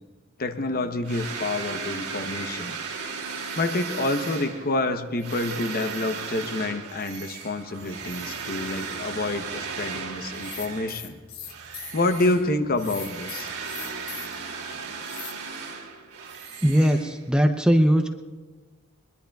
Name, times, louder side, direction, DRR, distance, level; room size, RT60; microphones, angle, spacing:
voice 1, 0.4-2.8 3.6-11.2 11.9-13.5, left 2 dB, 45° left, 8 dB, 0.8 m, -28 dB
sound 1, 1.0-11.1 11.5-17.5, right 5 dB, 90° right, 2.7 m, -36 dB
sound 2, 7.8-14.8, right 1 dB, 20° left, 6.0 m, -54 dB
sound 3, 10.3-12.0 12.8-14.4 15.0-15.3, left 9 dB, 80° left, 1.1 m, -39 dB
voice 2, 16.6-18.2, equal, 5° right, 6 dB, 0.6 m, -20 dB
21.5 x 21.5 x 2.3 m, 1.3 s
head